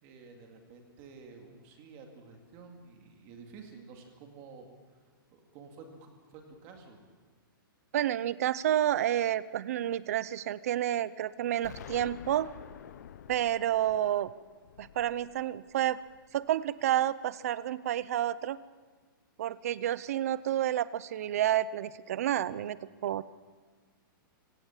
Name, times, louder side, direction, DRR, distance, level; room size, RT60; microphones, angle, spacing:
voice 1, 0.0-5.0 5.3-7.0, right 4 dB, 25° right, 3 dB, 2.3 m, -51 dB
voice 2, 7.9-12.5 13.3-14.3 14.8-16.0 16.3-18.6 19.4-23.2, right 12 dB, 40° right, 18 dB, 0.6 m, -30 dB
Explosion, 11.6-16.5, left 9 dB, 50° left, 0.9 m, -49 dB
24.5 x 17.5 x 7.3 m, 1.5 s
hypercardioid pair, 180°, 12 cm